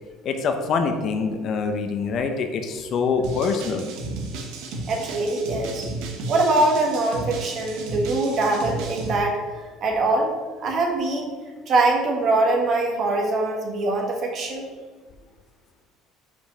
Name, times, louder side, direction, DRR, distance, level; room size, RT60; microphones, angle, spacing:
voice 1, 0.2-3.9, left 5 dB, 45° left, 6 dB, 0.8 m, -25 dB
Tech-Step Break, 3.2-9.2, right 3 dB, 75° right, 1.3 m, -33 dB
voice 2, 4.9-5.9 6.3-9.4 9.8-10.3 10.6-11.3 11.7-14.7, right 2 dB, 45° right, 1 dB, 1.6 m, -23 dB
5.3 x 5.2 x 6.1 m, 1.4 s
cardioid pair, 130°, 0 cm